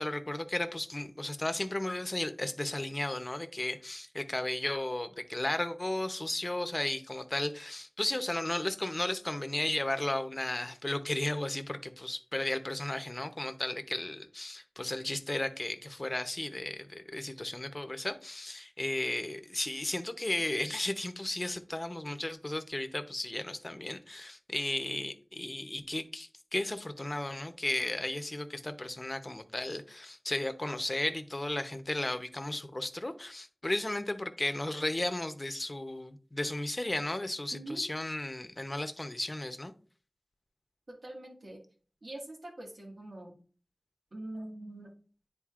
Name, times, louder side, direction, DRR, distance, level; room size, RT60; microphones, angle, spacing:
voice 1, 0.0-39.7, left 1 dB, 40° left, 0.7 m, -34 dB
voice 2, 37.5-37.8 40.9-41.6 42.0-43.3 44.1-44.9, right 1 dB, 85° right, 1.8 m, -43 dB
10.0 x 3.9 x 2.4 m
wide cardioid pair, 45°, 0 cm